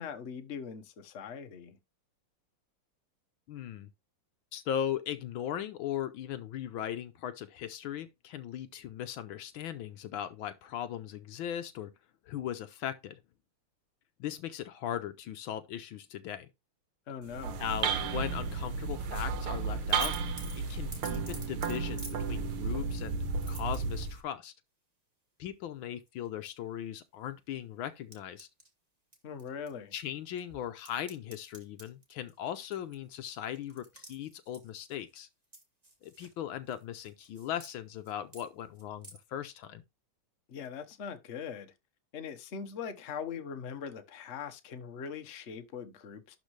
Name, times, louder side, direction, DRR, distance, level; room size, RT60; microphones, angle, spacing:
voice 1, 0.0-1.8 17.1-17.6 29.2-29.9 40.5-41.7 42.1-46.4, left 7 dB, 45° left, 1.0 m, -41 dB
voice 2, 3.5-3.9 4.5-11.9 12.3-13.2 14.2-16.5 17.6-20.2 20.6-24.5 25.4-28.5 29.9-35.3 36.0-39.8, left 10 dB, 75° left, 1.4 m, -38 dB
sound 1, 17.2-24.2, right 5 dB, 75° right, 1.7 m, -33 dB
sound 2, 19.9-22.2 23.4-24.2 26.1-26.5 26.9-27.0 28.1-28.7 29.1-30.0 30.4-35.2 35.5-36.4 36.7-37.7 38.0-38.5 38.8-39.2, right 2 dB, 20° right, 1.9 m, -48 dB
11.5 x 4.0 x 3.1 m
omnidirectional pair, 2.4 m